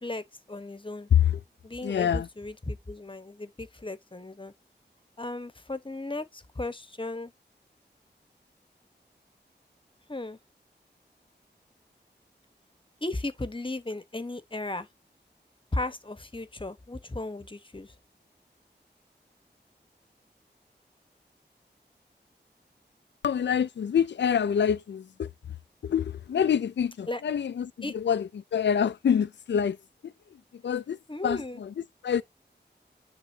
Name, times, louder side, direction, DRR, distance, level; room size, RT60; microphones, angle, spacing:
voice 1, 0.0-1.1 1.6-4.5 5.2-7.3 10.1-10.4 13.0-14.9 15.7-17.9 27.1-27.2 27.8-27.9 31.1-31.6, left 2 dB, 30° left, 1.2 m, -35 dB
voice 2, 1.1-1.4 1.8-2.3 23.2-25.3 25.8-29.8 30.0-30.1 30.5-31.0 31.2-31.7 32.0-32.2, left 8 dB, 80° left, 0.4 m, -26 dB
10.5 x 3.8 x 2.8 m
wide cardioid pair, 65°, 18 cm